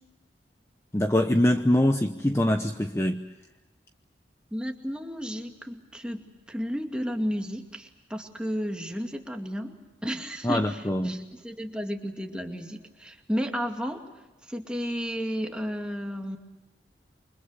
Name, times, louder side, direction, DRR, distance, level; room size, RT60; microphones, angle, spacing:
voice 1, 0.9-3.3 10.4-11.2, left 1 dB, 15° left, 6 dB, 0.9 m, -24 dB
voice 2, 4.5-9.7 10.0-14.0 14.5-16.4, equal, 5° right, 2 dB, 2.4 m, -33 dB
28.5 x 25.0 x 6.7 m, 1.1 s
head